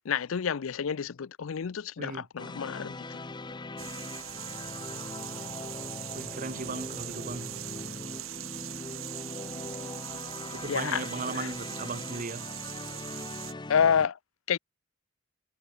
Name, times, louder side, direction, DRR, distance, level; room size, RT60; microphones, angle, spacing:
voice 1, 0.0-3.2 10.7-11.5 13.7-14.2 14.5-14.6, left 7 dB, 80° left, 0.5 m, -29 dB
sound 1, 2.4-14.1, left 2 dB, 20° left, 0.8 m, -41 dB
sound 2, 3.8-13.5, right 13 dB, 80° right, 1.2 m, -41 dB
voice 2, 6.1-7.6 10.5-12.5, right 3 dB, 40° right, 1.1 m, -37 dB
head